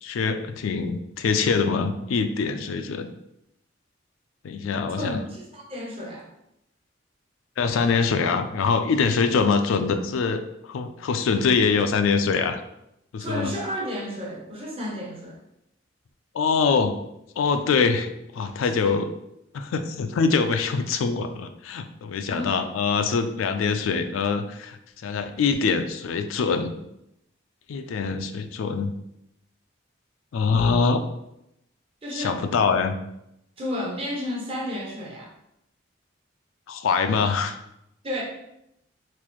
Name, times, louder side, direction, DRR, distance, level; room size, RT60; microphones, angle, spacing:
voice 1, 0.0-3.1 4.4-5.2 7.6-12.6 13.1-13.5 16.3-17.0 17.4-19.1 19.5-26.7 27.7-28.9 30.3-31.0 32.1-33.0 36.7-37.6, left 5 dB, 85° left, 8 dB, 0.3 m, -24 dB
voice 2, 5.0-6.3 13.2-15.4 18.9-19.1 22.3-22.5 32.0-32.4 33.6-35.3 38.0-38.2, left 1 dB, 30° right, -3 dB, 0.8 m, -32 dB
4.0 x 2.5 x 3.0 m, 0.82 s
head